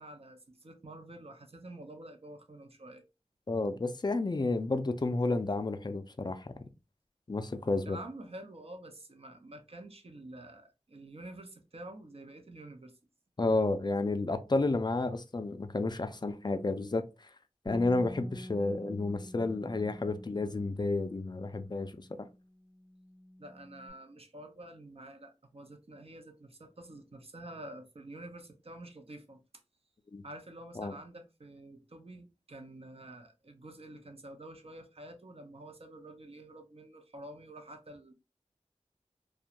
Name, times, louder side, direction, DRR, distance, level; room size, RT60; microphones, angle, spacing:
voice 1, 0.0-3.0 7.9-13.0 23.4-29.4 30.2-38.1, right 1 dB, 55° right, 0.6 m, -48 dB
voice 2, 3.5-6.6 7.3-8.0 13.4-17.3 17.7-22.3 30.1-30.2 30.8-30.9, left 2 dB, 35° left, 0.4 m, -31 dB
Bass guitar, 17.7-23.9, left 1 dB, 25° right, 1.0 m, -48 dB
2.4 x 2.2 x 2.8 m
wide cardioid pair, 55°, 12 cm